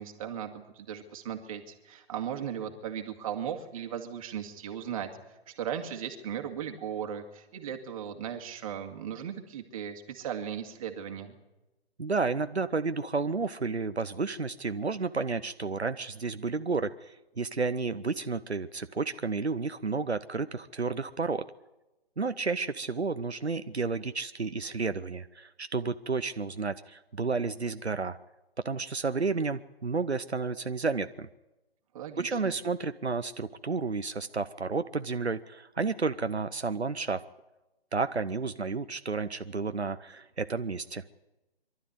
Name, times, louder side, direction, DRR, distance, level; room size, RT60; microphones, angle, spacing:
voice 1, 0.0-5.1 5.5-11.3 31.9-32.5, right 9 dB, 35° right, 5 dB, 2.2 m, -37 dB
voice 2, 12.0-21.5 22.2-28.2 28.6-31.3 32.2-37.2 37.9-41.0, right 4 dB, 85° right, 11 dB, 0.9 m, -31 dB
23.5 x 12.5 x 9.6 m, 1.0 s
figure-of-eight pair, 135°, 32 cm